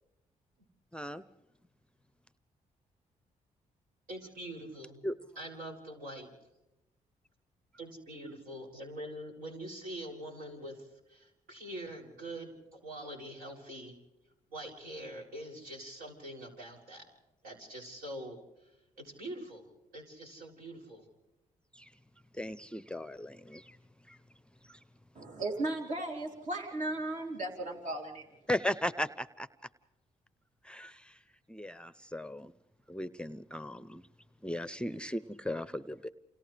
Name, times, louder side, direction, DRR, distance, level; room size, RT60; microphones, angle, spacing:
voice 1, 0.9-1.2 5.0-5.1 21.8-21.9 22.3-23.8 24.1-24.2 24.7-24.8 28.5-29.5 30.6-31.2 31.5-32.5 32.9-34.0 34.4-36.1, left 1 dB, 5° left, 14 dB, 0.7 m, -37 dB
voice 2, 4.1-5.1 5.4-6.3 7.8-13.9 14.5-17.1 17.4-19.7 19.9-21.1, right 1 dB, 80° right, -1 dB, 7.2 m, -44 dB
voice 3, 25.1-28.2, right 2 dB, 55° right, 1 dB, 3.2 m, -36 dB
29.0 x 28.5 x 3.4 m, 0.94 s
supercardioid pair, 65°, 15 cm